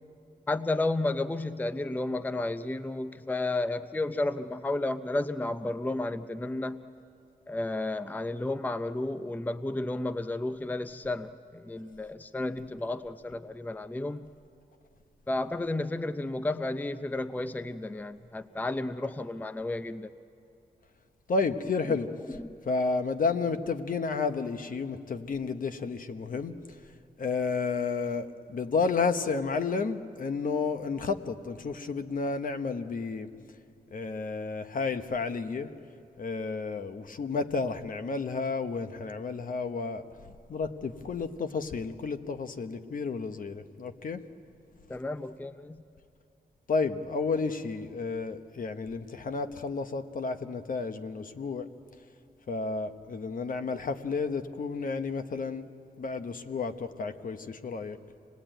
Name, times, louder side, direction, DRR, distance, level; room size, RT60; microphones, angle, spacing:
voice 1, 0.5-6.8 7.5-14.3 15.3-20.1 21.8-22.0 22.3-22.6 44.9-45.8, left 2 dB, 10° left, 12 dB, 0.5 m, -32 dB
voice 2, 21.3-22.1 22.7-26.6 27.2-33.3 33.9-35.7 36.2-40.0 40.5-44.2 46.7-51.7 52.5-55.7 56.0-58.0, left 4 dB, 55° left, 9 dB, 1.0 m, -31 dB
26.0 x 19.0 x 9.1 m, 2.7 s
wide cardioid pair, 130°, 16 cm